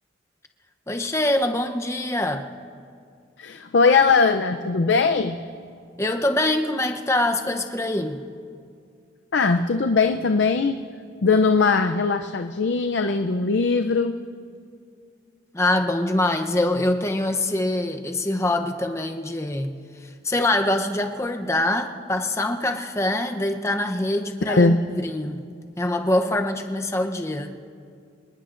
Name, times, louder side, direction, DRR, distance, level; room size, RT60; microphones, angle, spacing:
voice 1, 0.9-2.5 6.0-8.2 15.5-19.8 20.2-25.4 25.8-27.6, left 1 dB, 15° left, 5 dB, 0.7 m, -24 dB
voice 2, 3.4-5.4 9.3-10.8 11.2-14.2 24.5-24.8, left 4 dB, 65° left, 6 dB, 0.5 m, -20 dB
26.5 x 19.5 x 2.5 m, 2.3 s
head